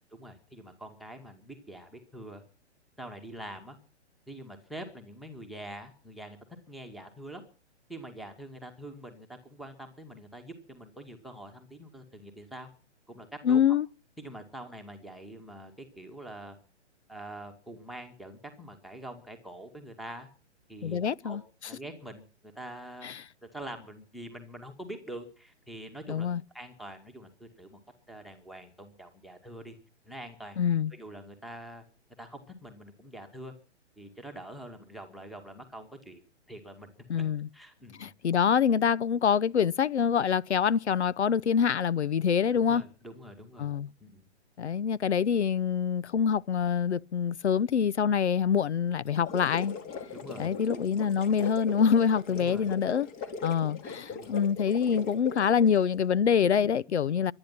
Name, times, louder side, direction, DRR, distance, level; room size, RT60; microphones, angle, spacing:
voice 1, 0.1-2.4 3.0-3.8 4.3-6.4 6.7-7.4 7.9-12.7 13.1-13.6 14.2-16.6 17.1-20.3 20.7-21.4 21.7-23.1 23.4-26.3 26.5-27.8 28.1-29.7 30.0-30.6 30.9-31.8 32.2-33.5 34.0-36.2 36.5-37.2 37.5-38.1 42.5-43.7 44.0-44.2 50.1-50.5 52.3-52.7 53.7-53.8 54.1-54.4 56.6-56.7, right 1 dB, ahead, 2.1 m, -45 dB
voice 2, 13.4-13.9 20.8-21.4 23.0-23.2 26.1-26.4 30.6-30.9 37.1-37.5 38.0-42.8 43.6-43.9 44.6-49.8 50.4-53.1 53.4-57.3, left 7 dB, 70° left, 0.7 m, -25 dB
sound 1, 49.1-55.9, left 5 dB, 25° left, 2.5 m, -39 dB
23.5 x 9.9 x 5.9 m
figure-of-eight pair, 125°, 35 cm